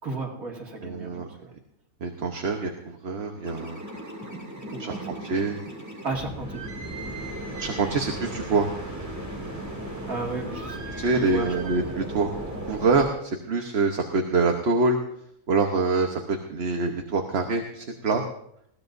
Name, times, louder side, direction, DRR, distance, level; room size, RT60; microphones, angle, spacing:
voice 1, 0.0-1.5 4.7-5.1 6.0-6.6 9.8-11.5, right 3 dB, 70° right, -1 dB, 2.7 m, -34 dB
voice 2, 0.8-1.3 2.0-3.8 4.8-5.6 7.6-8.7 11.0-12.3 12.6-15.0 15.5-18.2, right 3 dB, 50° right, 3 dB, 1.2 m, -25 dB
sound 1, 3.4-13.1, right 1 dB, 10° right, 2.5 m, -36 dB
20.5 x 16.0 x 2.6 m, 0.71 s
omnidirectional pair, 1.5 m